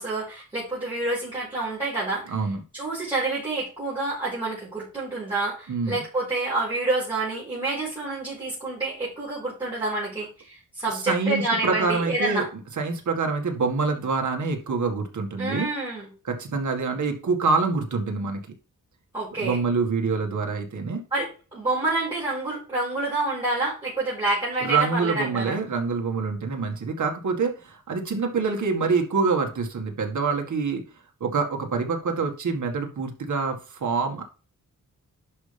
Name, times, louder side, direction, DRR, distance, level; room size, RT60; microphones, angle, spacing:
voice 1, 0.0-2.4 2.7-12.5 15.4-16.1 19.1-19.6 21.1-25.6, right 2 dB, 15° right, -9 dB, 4.7 m, -28 dB
voice 2, 2.3-2.6 5.7-6.0 10.9-12.4 12.8-15.7 16.2-18.4 19.4-21.0 24.6-30.8 31.2-34.2, right 4 dB, 60° right, 3 dB, 2.1 m, -26 dB
11.0 x 5.7 x 3.5 m, 0.33 s
wide cardioid pair, 170°, 33 cm